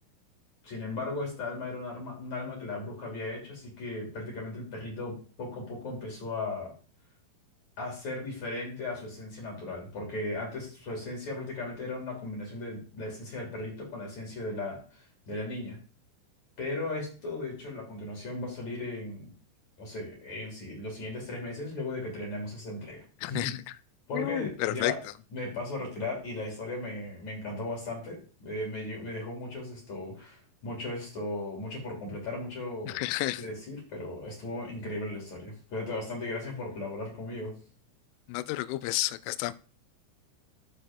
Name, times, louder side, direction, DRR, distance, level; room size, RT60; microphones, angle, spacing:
voice 1, 0.6-6.7 7.8-15.8 16.6-19.3 19.8-23.5 24.1-25.0 25.3-33.0 33.4-37.5, left 2 dB, 40° left, -2 dB, 3.9 m, -37 dB
voice 2, 23.2-23.6 24.1-24.9 32.9-33.4 38.3-39.5, left 16 dB, 85° left, 15 dB, 3.1 m, -31 dB
12.5 x 7.0 x 3.7 m, 0.39 s
omnidirectional pair, 5.7 m